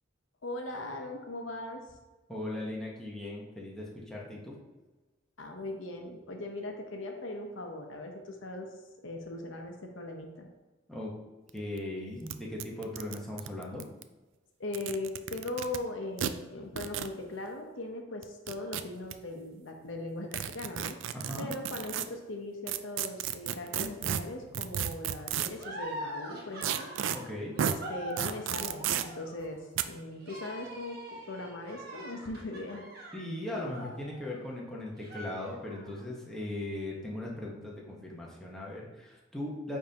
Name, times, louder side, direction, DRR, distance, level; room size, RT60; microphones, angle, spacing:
voice 1, 0.4-1.8 5.4-8.7 9.0-10.5 14.6-21.0 21.4-26.9 27.6-32.9, left 2 dB, 70° left, 3 dB, 0.8 m, -39 dB
voice 2, 2.3-4.5 10.9-11.1 11.5-13.8 21.1-21.5 27.1-27.6 33.1-39.8, left 1 dB, 5° left, -4 dB, 1.0 m, -38 dB
sound 1, 11.5-11.6 11.8-11.9 12.3-12.4 12.6-14.0 14.6-15.8 16.2-16.3 16.8-17.1 18.2-19.1 20.3-22.1 22.7-25.6 26.6-27.2 27.6-27.8 28.2-29.0 29.8-29.9, right 9 dB, 70° right, 0.3 m, -32 dB
sound 2, 25.5-34.6 35.0-36.0, equal, 50° right, 1.3 m, -44 dB
9.3 x 3.6 x 2.8 m, 1.2 s
head